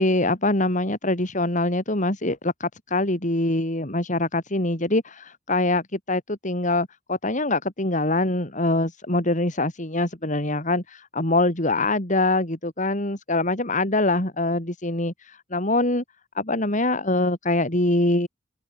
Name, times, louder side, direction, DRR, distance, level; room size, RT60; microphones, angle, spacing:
voice 1, 0.0-16.0 16.3-18.3, left 2 dB, 40° left, 4.2 m, -24 dB
head